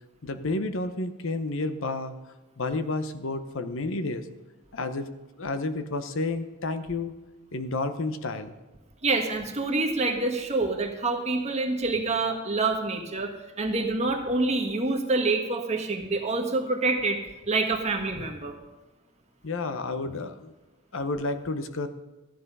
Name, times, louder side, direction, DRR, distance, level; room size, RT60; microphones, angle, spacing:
voice 1, 0.2-2.1 2.6-4.3 4.7-5.1 5.4-7.1 7.5-8.6 19.4-20.5 20.9-21.9, left 2 dB, 65° left, 9 dB, 0.8 m, -30 dB
voice 2, 9.0-13.3 13.6-17.2 17.5-18.5, right 3 dB, 30° right, 2 dB, 1.5 m, -26 dB
14.0 x 10.0 x 5.4 m, 1.1 s
head